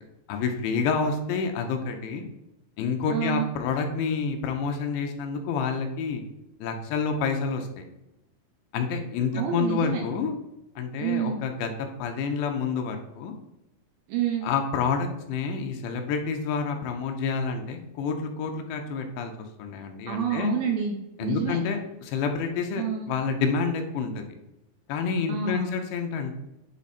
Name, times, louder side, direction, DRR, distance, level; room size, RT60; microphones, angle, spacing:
voice 1, 0.3-2.2 2.8-6.2 6.6-7.8 8.7-10.4 10.8-11.7 12.0-13.3 14.4-19.3 19.6-20.5 21.2-24.3 24.9-26.3, left 5 dB, 85° left, 5 dB, 3.0 m, -28 dB
voice 2, 3.1-3.5 9.3-10.0 11.0-11.4 14.1-14.5 20.1-21.6 22.8-23.1 25.3-25.7, right 8 dB, 80° right, 1 dB, 2.3 m, -28 dB
8.6 x 3.6 x 4.2 m, 0.90 s
omnidirectional pair, 5.0 m